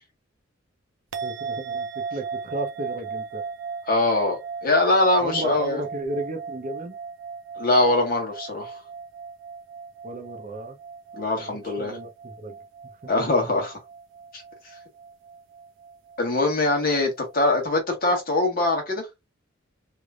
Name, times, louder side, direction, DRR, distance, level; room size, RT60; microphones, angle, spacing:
sound 1, 1.1-17.6, right 5 dB, 75° right, 0.5 m, -37 dB
voice 1, 1.2-3.4 5.2-7.0 10.0-10.8 11.4-12.6, right 1 dB, 40° right, 0.7 m, -34 dB
voice 2, 3.9-5.8 7.6-8.7 11.1-12.0 13.1-13.8 14.3-14.4 16.2-19.0, left 2 dB, 50° left, 1.5 m, -22 dB
3.4 x 3.0 x 2.4 m
head